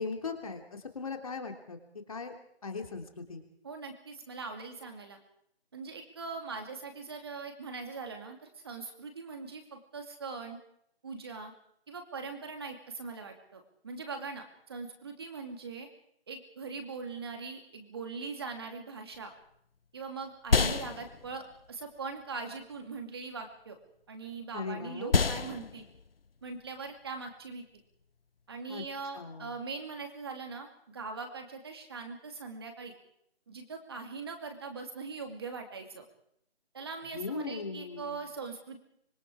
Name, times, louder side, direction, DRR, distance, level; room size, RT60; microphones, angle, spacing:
voice 1, 0.0-1.8 2.1-2.3 2.6-3.4 24.5-25.1 28.7-28.8 29.1-29.5 37.1-38.2, left 4 dB, 30° left, 4 dB, 3.2 m, -38 dB
voice 2, 3.6-5.2 5.7-10.6 11.0-11.5 11.9-15.9 16.3-19.3 19.9-23.8 24.1-25.9 26.4-27.6 28.5-32.9 33.5-36.0 36.7-38.8, right 4 dB, 25° right, 4 dB, 2.6 m, -41 dB
sound 1, 19.1-28.8, left 4 dB, 60° left, 0.9 m, -33 dB
25.5 x 24.0 x 4.9 m, 0.72 s
figure-of-eight pair, 170°, 33 cm